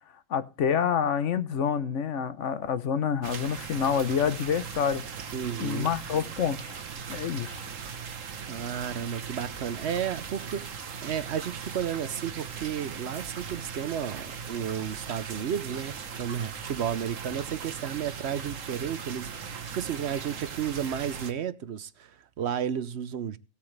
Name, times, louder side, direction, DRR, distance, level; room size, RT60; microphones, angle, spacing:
voice 1, 0.3-5.1 5.6-6.8 7.1-7.7, left 7 dB, 70° left, 1.2 m, -27 dB
sound 1, 3.2-21.3, right 6 dB, 80° right, 1.5 m, -39 dB
voice 2, 5.3-5.9 8.4-10.7 11.0-23.4, right 8 dB, 60° right, 1.0 m, -33 dB
17.5 x 8.8 x 3.3 m
omnidirectional pair, 1.3 m